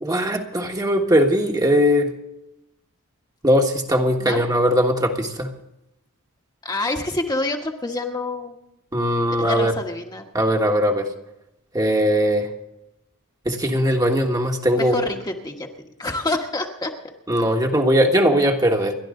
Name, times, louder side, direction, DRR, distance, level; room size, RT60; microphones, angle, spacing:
voice 1, 0.0-2.1 3.4-5.5 8.9-9.7 10.3-11.1 11.7-12.5 13.4-14.9 17.3-18.9, equal, 15° right, 2 dB, 1.5 m, -19 dB
voice 2, 6.6-8.6 9.3-10.3 14.8-15.7 16.0-16.9, left 2 dB, 20° left, 1 dB, 1.4 m, -27 dB
29.5 x 11.5 x 3.8 m, 0.90 s
head